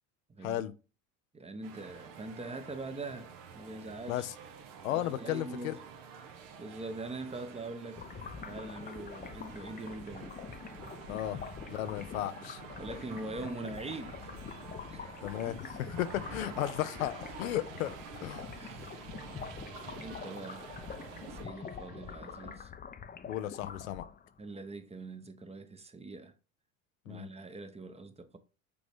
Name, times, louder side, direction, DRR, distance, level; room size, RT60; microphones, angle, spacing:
voice 1, 0.3-0.6 1.3-4.2 4.9-5.8 6.6-10.4 11.3-11.5 12.8-14.3 14.9-15.1 18.6-19.1 20.0-20.7 21.2-22.7 24.4-26.3 27.1-28.4, right 2 dB, 15° right, 0.9 m, -43 dB
sound 1, 1.6-21.4, right 7 dB, 70° right, 1.2 m, -49 dB
voice 2, 4.8-5.8 11.1-11.4 11.7-12.6 15.2-17.9 18.2-18.5 23.3-24.0 27.1-27.3, left 13 dB, 80° left, 0.7 m, -34 dB
sound 2, 8.0-24.4, left 7 dB, 20° left, 0.6 m, -45 dB
sound 3, 15.9-22.6, right 8 dB, 50° right, 1.2 m, -54 dB
6.8 x 3.9 x 3.5 m
hypercardioid pair, 75°, 40 cm